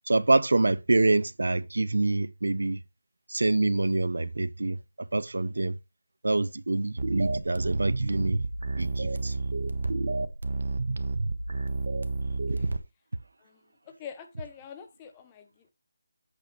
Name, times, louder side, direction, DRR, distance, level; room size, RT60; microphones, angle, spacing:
voice 1, 0.1-2.8 3.3-4.8 5.1-5.8 6.2-8.4 8.8-9.3 10.0-10.1, right 2 dB, 85° right, 0.7 m, -26 dB
sound 1, 7.0-12.8, right 3 dB, 70° right, 1.4 m, -30 dB
voice 2, 12.3-12.7 13.4-15.7, left 8 dB, 15° left, 1.0 m, -46 dB
8.5 x 8.3 x 3.3 m
figure-of-eight pair, 170°, 0 cm